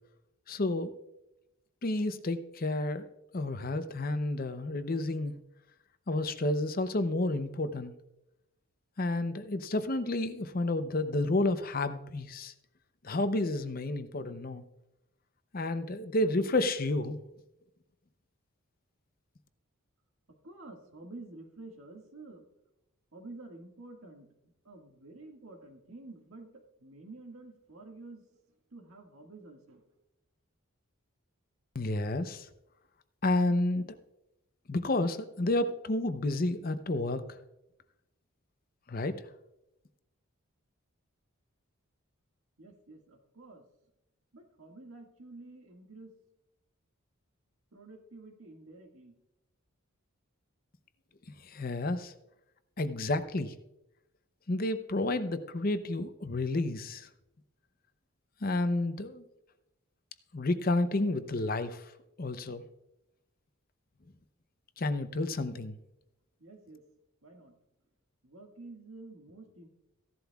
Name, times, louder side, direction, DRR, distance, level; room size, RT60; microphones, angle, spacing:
voice 1, 0.5-0.9 1.8-3.1 3.3-5.4 6.1-7.9 9.0-12.5 13.0-14.6 15.5-17.2 31.7-32.5 33.2-33.9 34.7-37.2 38.9-39.2 51.4-52.1 52.8-53.5 54.5-57.1 58.4-59.2 60.3-61.9 62.2-62.6 64.8-65.8, left 2 dB, 45° left, 11 dB, 0.6 m, -30 dB
voice 2, 20.4-22.5 23.1-28.3 28.7-29.8 42.6-43.6 44.3-46.1 47.7-49.1 66.4-66.8 67.2-67.6 68.2-69.7, right 2 dB, 75° right, 2 dB, 1.8 m, -50 dB
15.5 x 11.5 x 2.3 m, 0.89 s
head